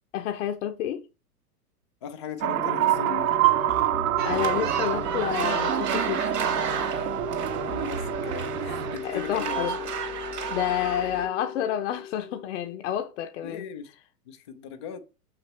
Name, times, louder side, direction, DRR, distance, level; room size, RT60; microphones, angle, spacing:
voice 1, 0.1-1.0 4.2-6.2 9.0-9.8 10.5-13.6, left 11 dB, 50° left, 0.8 m, -29 dB
voice 2, 2.0-3.3 7.6-9.7 13.4-13.9 14.3-15.0, left 7 dB, 20° left, 0.3 m, -38 dB
sound 1, 2.4-9.0, right 14 dB, 55° right, 0.7 m, -27 dB
sound 2, 2.5-13.2, left 8 dB, 80° left, 1.1 m, -38 dB
sound 3, 4.2-11.3, right 6 dB, 75° right, 2.4 m, -32 dB
7.1 x 6.0 x 3.2 m
figure-of-eight pair, 110°, 48 cm